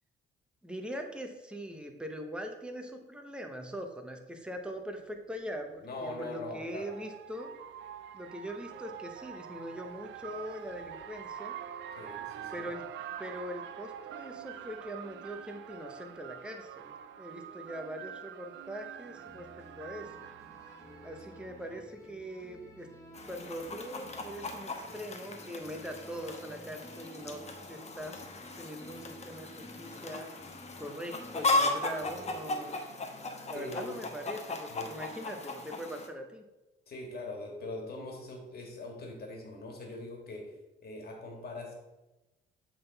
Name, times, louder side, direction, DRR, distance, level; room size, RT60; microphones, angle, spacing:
voice 1, 0.6-7.5 8.1-11.5 12.5-12.8 13.2-19.5 19.8-20.1 21.0-22.9 23.3-27.4 27.7-28.3 28.6-30.3 30.8-32.8 33.5-36.4, equal, 5° right, 4 dB, 0.9 m, -42 dB
sound 1, 4.7-4.8 6.2-21.8, right 9 dB, 70° right, 0.4 m, -45 dB
voice 2, 5.8-6.9 11.9-12.7 33.5-34.0 34.7-34.9 36.9-40.5 40.8-41.7, left 2 dB, 50° left, 1 dB, 2.0 m, -42 dB
sound 2, 19.0-32.7, equal, 15° left, 1.3 m, -53 dB
Chicken rooster, 23.1-36.1, left 2 dB, 35° left, 1.0 m, -37 dB
7.7 x 3.9 x 4.1 m, 1.0 s
cardioid pair, 90°, 20 cm